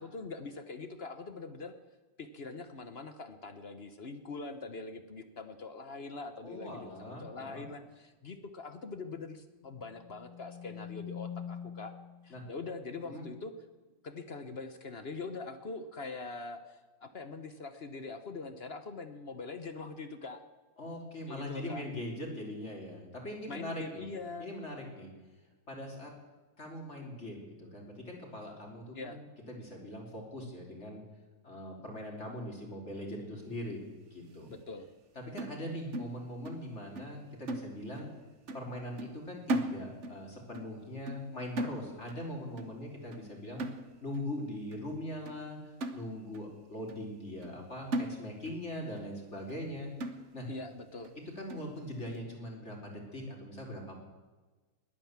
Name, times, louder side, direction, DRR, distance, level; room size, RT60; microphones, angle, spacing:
voice 1, 0.0-1.7 2.2-11.9 12.2-13.5 14.0-20.4 21.3-21.8 23.5-24.5 28.9-29.2 34.5-34.9 50.5-51.1, left 3 dB, 50° left, 9 dB, 0.7 m, -43 dB
voice 2, 6.4-7.6 12.3-12.4 13.0-13.2 20.8-24.1 24.4-25.1 25.7-26.1 26.6-29.2 29.5-31.0 31.4-33.8 34.1-34.5 35.2-38.1 38.5-43.6 44.0-49.9 50.3-50.5 51.4-53.9, left 1 dB, 30° left, 0 dB, 3.5 m, -41 dB
sound 1, 9.8-12.3, left 8 dB, 70° left, 1.8 m, -44 dB
sound 2, 35.4-36.7 37.0-37.2 37.5-38.2 38.5-38.7 39.0-40.2 40.5-40.8 41.1-41.3 41.6-42.2 42.6-42.8 43.1-43.3 43.6-44.2 44.7-44.8 45.3-45.4 45.8-46.5 46.9-47.0 47.4-47.6 47.9-48.6 49.0-49.1 49.5-49.6 50.0-50.5 51.0-51.1 51.5-51.7, right 1 dB, 45° right, 1.0 m, -38 dB
20.5 x 9.3 x 7.3 m, 1.3 s
omnidirectional pair, 2.3 m